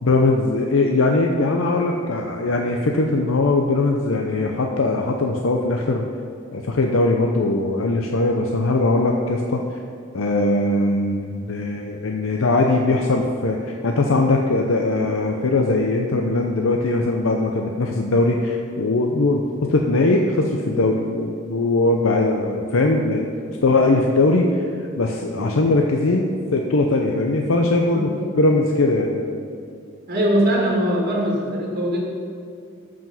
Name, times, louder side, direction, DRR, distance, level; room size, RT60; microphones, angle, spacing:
voice 1, 0.0-6.0 6.5-9.6 10.1-23.3 23.6-28.1 28.4-29.2, left 2 dB, 80° left, 2 dB, 0.7 m, -20 dB
voice 2, 30.1-32.0, equal, 45° right, -2 dB, 1.8 m, -21 dB
13.5 x 5.1 x 5.6 m, 2.3 s
head